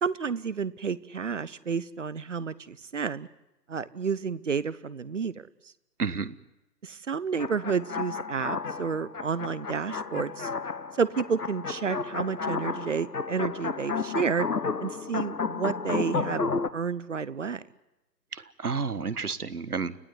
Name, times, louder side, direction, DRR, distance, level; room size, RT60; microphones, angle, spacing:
voice 1, 0.0-3.3 3.7-5.5 6.8-10.5 11.0-14.5 14.8-17.6, right 6 dB, 45° right, 18 dB, 1.0 m, -30 dB
voice 2, 6.0-6.4 18.3-20.0, right 5 dB, 65° right, 16 dB, 1.6 m, -31 dB
sound 1, 7.3-16.7, left 5 dB, 65° left, 1.4 m, -32 dB
30.0 x 16.0 x 9.6 m, 0.96 s
figure-of-eight pair, 140°, 49 cm